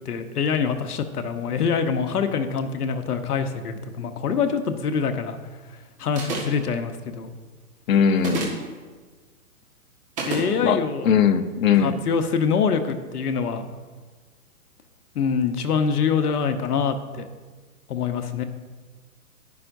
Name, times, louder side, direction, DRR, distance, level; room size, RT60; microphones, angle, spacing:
voice 1, 0.0-5.4 6.0-7.3 10.3-11.1 11.8-13.7 15.1-17.3 17.9-18.4, left 6 dB, 85° left, 8 dB, 1.1 m, -25 dB
sound 1, 6.2-6.7 8.2-8.7 10.2-10.5, right 3 dB, 15° right, 1.5 m, -28 dB
voice 2, 7.9-8.5 10.6-12.0, left 7 dB, 65° left, 9 dB, 0.9 m, -20 dB
11.0 x 11.0 x 2.7 m, 1.4 s
hypercardioid pair, 160°, 44 cm